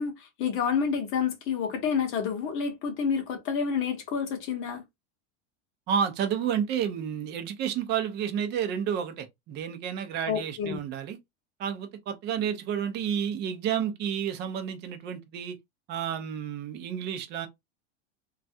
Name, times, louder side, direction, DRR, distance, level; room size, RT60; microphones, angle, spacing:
voice 1, 0.0-4.8 10.3-10.8, left 6 dB, 35° left, 0.8 m, -29 dB
voice 2, 5.9-11.2 11.6-15.6 15.9-17.5, right 8 dB, 30° right, 0.5 m, -30 dB
3.2 x 2.3 x 2.6 m
supercardioid pair, 160°, 35 cm